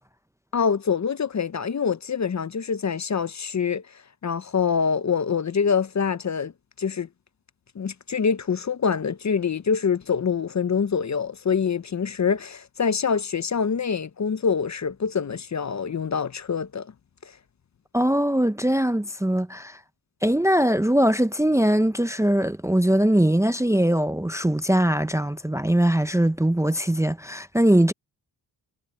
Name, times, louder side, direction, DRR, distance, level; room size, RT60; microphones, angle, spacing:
voice 1, 0.5-3.8 4.2-6.5 6.8-7.1 7.8-16.9 17.2-17.3, left 6 dB, 40° left, 0.8 m, -25 dB
voice 2, 17.9-19.8 20.2-27.9, right 1 dB, 5° right, 0.6 m, -21 dB
cardioid pair, 85°, 44 cm